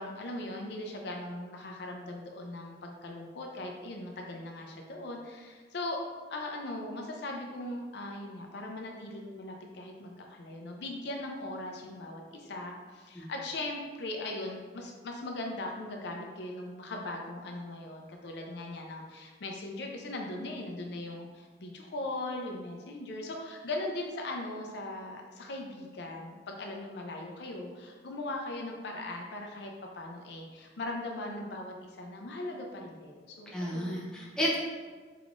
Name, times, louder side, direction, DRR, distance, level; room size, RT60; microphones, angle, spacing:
voice 1, 0.0-6.0 6.3-34.0, left 2 dB, 65° left, 1 dB, 0.5 m, -39 dB
voice 2, 33.5-34.6, equal, 5° left, -5 dB, 0.7 m, -32 dB
4.6 x 3.6 x 2.5 m, 1.5 s
head